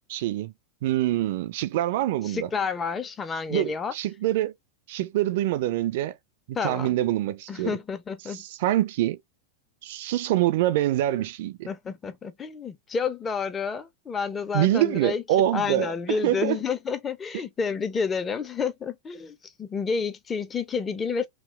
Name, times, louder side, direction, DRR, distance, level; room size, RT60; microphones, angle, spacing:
voice 1, 0.1-0.5 0.8-2.5 3.5-4.5 4.9-6.1 6.5-7.8 8.3-9.2 9.8-11.7 14.5-16.6, right 14 dB, 50° right, 0.3 m, -25 dB
voice 2, 2.3-3.9 6.5-7.0 7.5-8.4 11.7-15.2 15.5-21.3, left 5 dB, 20° left, 0.4 m, -30 dB
2.8 x 2.1 x 2.2 m
figure-of-eight pair, 90°, 0 cm